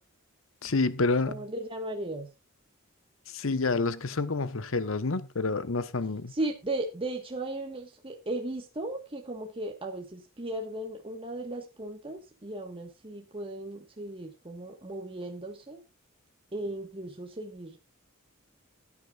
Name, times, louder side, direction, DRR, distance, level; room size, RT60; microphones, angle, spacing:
voice 1, 0.6-1.5 3.3-6.3, left 3 dB, 70° left, 0.9 m, -28 dB
voice 2, 1.3-2.3 6.3-15.8 16.5-17.8, right 1 dB, 25° right, 1.4 m, -36 dB
16.5 x 9.8 x 2.4 m
head